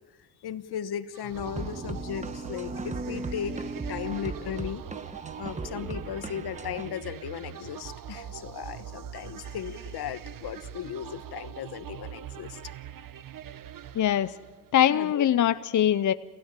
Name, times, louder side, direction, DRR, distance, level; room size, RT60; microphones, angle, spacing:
voice 1, 0.4-3.6 3.9-4.8 5.4-12.6 14.9-15.3, left 9 dB, 75° left, 13 dB, 1.2 m, -36 dB
sound 1, 1.1-14.8, right 10 dB, 55° right, 0.9 m, -43 dB
sound 2, 1.3-5.7, right 1 dB, 35° right, 6.3 m, -49 dB
sound 3, 1.6-6.9, right 3 dB, 20° right, 1.1 m, -37 dB
voice 2, 13.9-14.3 14.7-16.1, left 10 dB, 50° left, 13 dB, 0.6 m, -22 dB
27.0 x 16.0 x 9.0 m, 1.4 s
cardioid pair, 105°, 39 cm